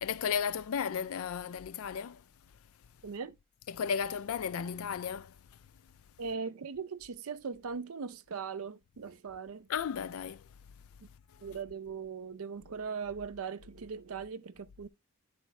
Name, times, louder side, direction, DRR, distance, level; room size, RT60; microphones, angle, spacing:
voice 1, 0.0-2.2 3.7-5.3 9.7-10.4, left 7 dB, 70° left, 0.4 m, -34 dB
voice 2, 3.0-3.3 6.2-9.7 11.4-14.9, right 5 dB, 70° right, 0.5 m, -39 dB
10.0 x 4.3 x 3.1 m
head